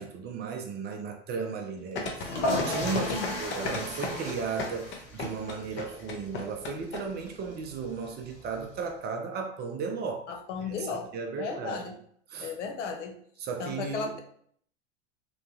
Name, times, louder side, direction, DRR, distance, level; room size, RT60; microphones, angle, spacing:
voice 1, 0.0-10.3 10.6-11.8 12.3-12.5 13.4-14.1, right 5 dB, 30° right, 3 dB, 0.5 m, -35 dB
sound 1, 2.0-7.0 7.3-7.4, left 3 dB, 35° left, 0.6 m, -33 dB
sound 2, 2.1-8.9, left 1 dB, 55° left, 1.0 m, -36 dB
voice 2, 10.3-11.1 11.4-11.9 12.4-13.2 13.6-14.2, left 5 dB, 80° left, 4 dB, 0.6 m, -34 dB
2.9 x 2.1 x 2.7 m, 0.62 s
hypercardioid pair, 95°, 35 cm